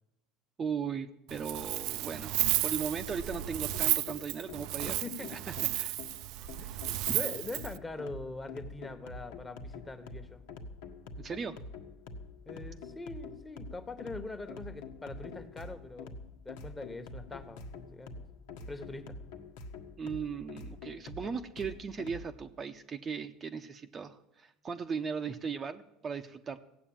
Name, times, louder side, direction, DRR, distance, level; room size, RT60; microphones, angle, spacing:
voice 1, 0.6-5.9 7.1-7.2 11.2-11.6 20.0-26.6, right 6 dB, 25° right, 6 dB, 0.7 m, -38 dB
Wind, 1.3-7.8, right 15 dB, 65° right, 0.5 m, -33 dB
sound 1, 3.1-22.3, left 3 dB, 90° left, 1.6 m, -46 dB
voice 2, 4.9-5.3 6.6-6.9 7.1-10.4 12.4-16.2 16.4-18.1 18.7-19.2, left 2 dB, 15° left, 8 dB, 1.3 m, -43 dB
16.0 x 8.2 x 8.8 m, 0.91 s
cardioid pair, 130°, 0 cm